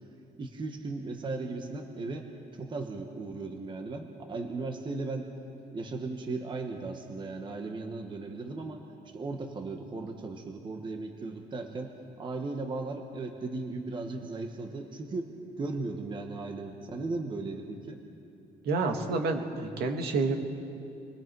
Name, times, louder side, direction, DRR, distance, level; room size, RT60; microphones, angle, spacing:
voice 1, 0.4-5.3 5.7-15.3 15.6-18.0, right 3 dB, 25° right, 4 dB, 1.3 m, -37 dB
voice 2, 18.6-20.4, right 3 dB, 70° right, 3 dB, 2.0 m, -29 dB
29.5 x 21.5 x 4.7 m, 2.7 s
cardioid pair, 170°, 17 cm